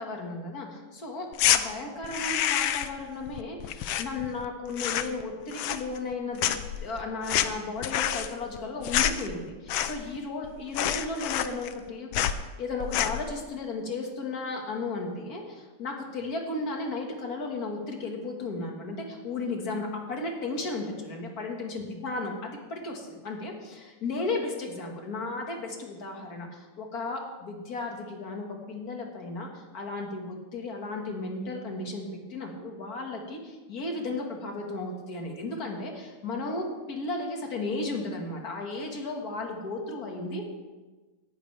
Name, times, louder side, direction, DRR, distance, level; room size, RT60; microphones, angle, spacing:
voice 1, 0.0-6.6 6.8-40.4, left 3 dB, 45° left, 1 dB, 2.1 m, -34 dB
sound 1, 1.3-1.6 2.0-3.0 3.3-4.5 4.7-5.2 5.5-6.1 6.4-10.2 10.4-10.5 10.7-11.8 12.1-12.4 12.8-13.3, left 11 dB, 75° left, 1.3 m, -28 dB
17.5 x 11.0 x 3.4 m, 1.3 s
omnidirectional pair, 2.4 m